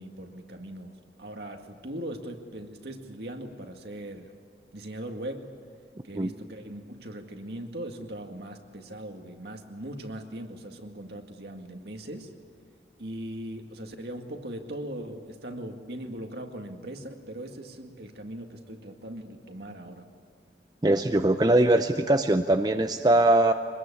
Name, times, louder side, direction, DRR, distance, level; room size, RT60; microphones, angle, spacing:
voice 1, 0.0-4.3 4.7-5.5 6.0-12.3 13.0-20.1, right 1 dB, 65° right, 4 dB, 2.1 m, -39 dB
voice 2, 20.8-23.5, right 1 dB, 20° right, 7 dB, 0.6 m, -21 dB
25.0 x 20.5 x 8.5 m, 2.1 s
head